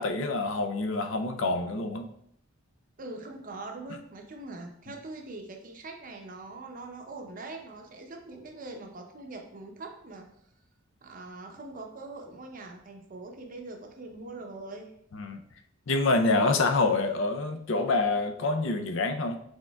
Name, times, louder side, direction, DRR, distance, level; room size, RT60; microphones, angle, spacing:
voice 1, 0.0-2.1 15.1-15.4 15.9-19.4, left 3 dB, 70° left, 6 dB, 0.5 m, -26 dB
voice 2, 3.0-10.3 11.0-14.9, right 2 dB, 40° right, 3 dB, 0.7 m, -42 dB
6.3 x 3.7 x 2.3 m, 0.70 s
head